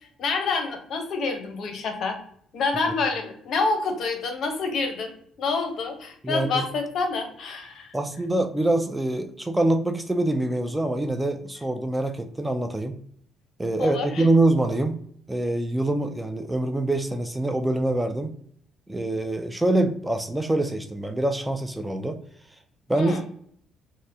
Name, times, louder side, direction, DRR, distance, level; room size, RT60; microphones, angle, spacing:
voice 1, 0.2-2.2 2.5-5.1 5.4-7.9 13.8-14.3 22.9-23.2, left 4 dB, 60° left, 5 dB, 0.7 m, -27 dB
voice 2, 6.2-6.7 7.9-13.0 13.6-15.0 15.3-18.4 18.9-22.2 22.9-23.2, right 2 dB, 10° right, 6 dB, 0.3 m, -25 dB
4.1 x 2.1 x 2.6 m, 0.63 s
cardioid pair, 95°, 0 cm